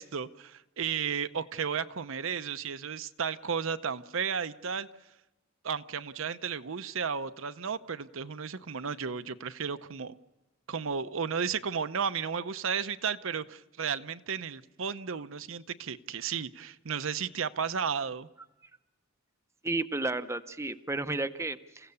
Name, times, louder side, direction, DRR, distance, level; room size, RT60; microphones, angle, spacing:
voice 1, 0.0-4.9 5.6-10.2 10.7-18.3, right 6 dB, 70° right, 11 dB, 0.7 m, -33 dB
voice 2, 19.6-21.9, right 2 dB, 15° right, 10 dB, 0.7 m, -32 dB
28.5 x 16.0 x 7.0 m, 1.0 s
head